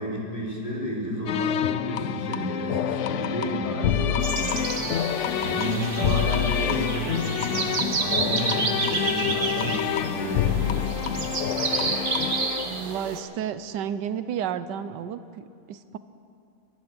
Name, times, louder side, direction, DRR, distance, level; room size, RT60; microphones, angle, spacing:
voice 1, 0.0-12.0, equal, 25° left, -5 dB, 3.8 m, -31 dB
sound 1, 1.3-12.7, left 10 dB, 90° left, 0.6 m, -27 dB
sound 2, 4.2-13.2, right 4 dB, 35° right, 1.1 m, -30 dB
voice 2, 6.0-6.3 12.6-16.0, right 9 dB, 85° right, 13 dB, 1.3 m, -32 dB
20.5 x 11.5 x 6.1 m, 2.5 s
omnidirectional pair, 1.8 m